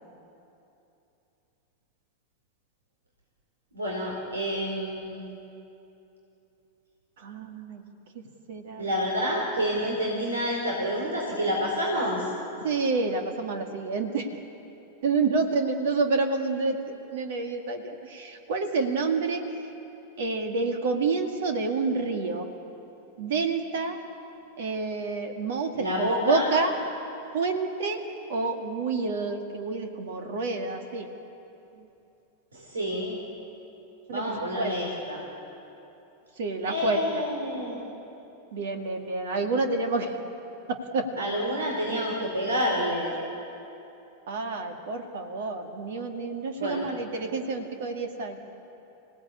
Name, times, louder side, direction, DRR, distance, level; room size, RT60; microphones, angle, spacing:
voice 1, 3.7-5.2 8.8-12.2 25.7-26.5 32.5-33.2 34.1-35.2 36.6-37.8 41.2-43.1 46.6-46.9, equal, 75° right, -2 dB, 4.4 m, -28 dB
voice 2, 7.2-7.8 8.1-8.2 8.5-9.0 12.6-14.3 15.0-19.7 20.2-22.5 23.2-24.0 24.6-26.7 27.3-28.0 28.3-31.1 31.7-31.9 34.1-34.7 36.4-37.0 38.5-40.2 40.7-41.1 44.3-48.4, right 3 dB, 55° right, 5 dB, 2.0 m, -28 dB
27.0 x 17.5 x 8.5 m, 2.9 s
figure-of-eight pair, 90°, 0 cm